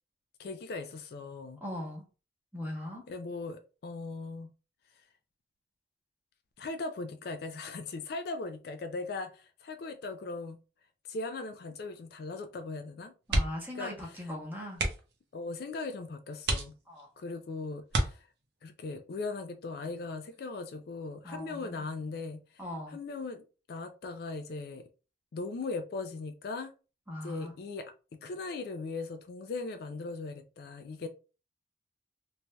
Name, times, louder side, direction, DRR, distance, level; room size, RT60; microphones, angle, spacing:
voice 1, 0.4-1.6 3.1-4.5 6.6-10.6 11.1-13.1 13.7-13.9 15.3-16.8 17.2-18.3 18.6-22.6 22.9-24.8 25.3-26.7 27.2-31.1, left 3 dB, 55° left, 0.3 m, -39 dB
voice 2, 1.6-2.0 2.5-3.0 13.3-14.8 16.9-17.1 21.2-21.9 22.6-23.0 27.1-27.5, left 1 dB, 10° right, 0.9 m, -39 dB
sound 1, 13.2-13.8 14.1-14.3 14.7-15.2 15.8-15.9 16.4-17.2 17.9-18.7 20.2-20.5 20.9-21.0, right 1 dB, 60° right, 0.7 m, -31 dB
3.1 x 2.7 x 2.2 m
head